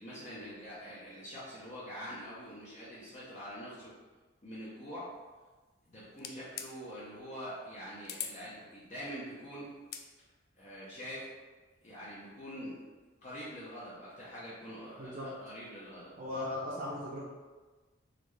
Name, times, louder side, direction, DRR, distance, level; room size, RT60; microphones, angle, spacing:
voice 1, 0.0-3.9 4.4-5.2 5.9-9.7 10.6-11.3 11.8-12.9 13.2-16.4, equal, 40° left, -9 dB, 0.8 m, -45 dB
sound 1, 6.2-6.7 8.1-8.4 9.8-10.1, left 8 dB, 55° left, 0.3 m, -40 dB
voice 2, 16.2-17.2, left 1 dB, 45° right, -7 dB, 0.7 m, -37 dB
4.1 x 3.1 x 3.3 m, 1.3 s
head